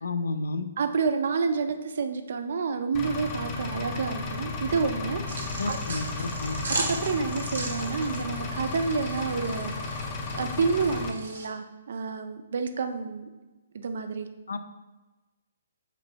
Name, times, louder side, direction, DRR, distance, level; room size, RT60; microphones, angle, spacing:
voice 1, 0.0-0.7 5.6-6.6 14.5-14.6, left 3 dB, 85° left, 10 dB, 0.3 m, -31 dB
voice 2, 0.8-5.8 6.9-13.3 13.7-14.3, right 5 dB, 60° right, 7 dB, 0.4 m, -29 dB
Engine, 2.9-11.1, left 4 dB, 25° left, 0.5 m, -34 dB
sound 1, 5.3-11.5, right 2 dB, 85° right, 0.8 m, -37 dB
4.4 x 2.9 x 2.7 m, 1.1 s
hypercardioid pair, 150°, 0 cm